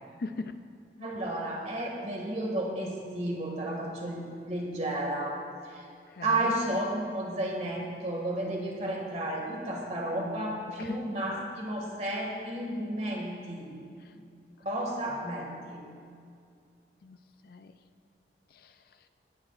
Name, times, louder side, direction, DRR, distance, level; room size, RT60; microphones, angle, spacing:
voice 1, 0.2-1.1 6.1-6.5 10.8-11.1 14.0-14.1 15.3-15.4 17.0-17.7 18.5-19.1, left 3 dB, 55° left, 9 dB, 0.4 m, -42 dB
voice 2, 1.0-4.2 4.5-5.4 5.7-5.8 6.2-13.7 14.6-15.8, right 1 dB, 40° right, -1 dB, 1.9 m, -32 dB
18.5 x 11.0 x 2.4 m, 2.3 s
head